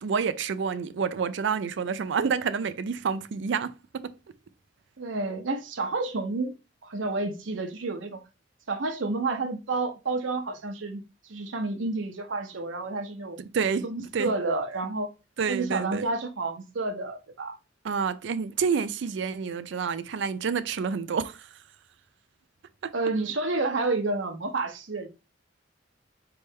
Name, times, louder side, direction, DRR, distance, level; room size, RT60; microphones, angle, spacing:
voice 1, 0.0-4.1 13.4-13.9 14.1-14.3 15.4-16.1 17.8-21.5 22.8-22.9, right 6 dB, 70° right, 0.4 m, -28 dB
voice 2, 5.0-6.5 6.8-8.2 8.7-13.4 13.8-15.1 15.5-17.6 22.9-25.1, right 3 dB, 85° right, 0.8 m, -30 dB
4.2 x 3.4 x 3.4 m
head